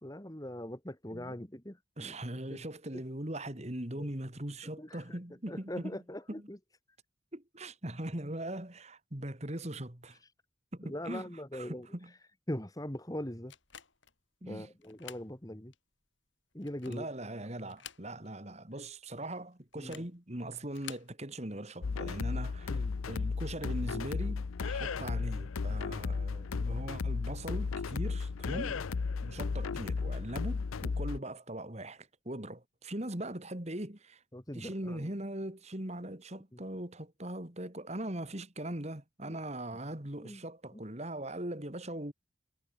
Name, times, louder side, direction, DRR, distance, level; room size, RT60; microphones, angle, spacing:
voice 1, 0.0-2.2 2.5-2.6 2.9-3.0 4.0-4.1 4.8-5.2 5.5-6.6 10.8-11.9 12.5-13.5 14.4-15.7 16.5-17.1 19.8-20.1 22.7-22.9 28.5-28.9 34.3-35.1 36.5-36.6 39.3-39.4 40.2-40.4 40.7-40.8, left 1 dB, 15° left, 1.8 m, -41 dB
voice 2, 2.0-5.9 6.3-6.5 7.3-10.2 10.7-12.1 14.4-14.7 16.9-28.8 29.2-34.2 34.5-42.1, right 1 dB, 30° right, 2.4 m, -40 dB
sound 1, 13.5-14.2 14.8-15.3 15.7-15.8 16.5-17.2 17.6-18.4 18.7-18.8 19.7-20.2 20.7-21.1, left 9 dB, 65° left, 7.0 m, -50 dB
sound 2, 21.8-31.2, left 4 dB, 90° left, 0.6 m, -34 dB
head